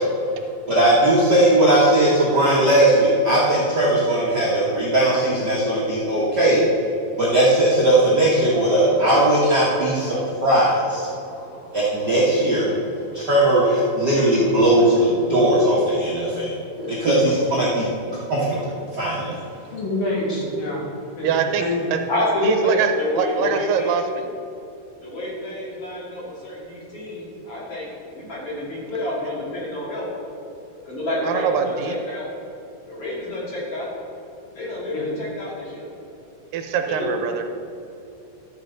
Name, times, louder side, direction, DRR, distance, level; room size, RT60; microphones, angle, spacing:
voice 1, 0.7-6.6 7.2-11.0 11.7-12.7 13.1-14.9 15.3-16.5 17.0-17.8 18.3-18.6 18.9-19.4, right 1 dB, 50° right, -7 dB, 1.2 m, -18 dB
voice 2, 11.1-12.1 13.1-13.2 14.4-14.5 16.3-17.1 17.3-17.4 18.1-18.3 18.9-19.0 19.4-19.8 22.1-24.1 25.0-30.1 30.9-32.3 32.9-33.9 34.5-35.9, left 1 dB, 45° left, -6 dB, 2.9 m, -29 dB
voice 3, 19.7-20.8 21.2-21.8 34.9-35.1 37.0-37.1, left 2 dB, 75° left, -5 dB, 4.1 m, -26 dB
voice 4, 21.2-21.6 21.9-22.0 22.4-24.3 31.2-32.0 36.5-37.4, right 7 dB, 80° right, 6 dB, 2.3 m, -23 dB
13.0 x 7.3 x 3.9 m, 2.8 s
omnidirectional pair, 4.1 m